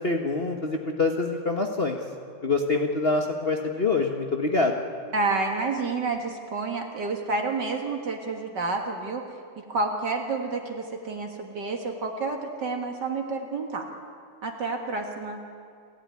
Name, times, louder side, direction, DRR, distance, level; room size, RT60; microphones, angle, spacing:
voice 1, 0.0-2.0 2.4-4.8, left 3 dB, 35° left, 2 dB, 1.5 m, -25 dB
voice 2, 5.1-9.2 9.6-13.9 14.4-15.4, right 3 dB, 65° right, 2 dB, 2.3 m, -29 dB
29.0 x 14.0 x 9.7 m, 2.4 s
omnidirectional pair, 2.0 m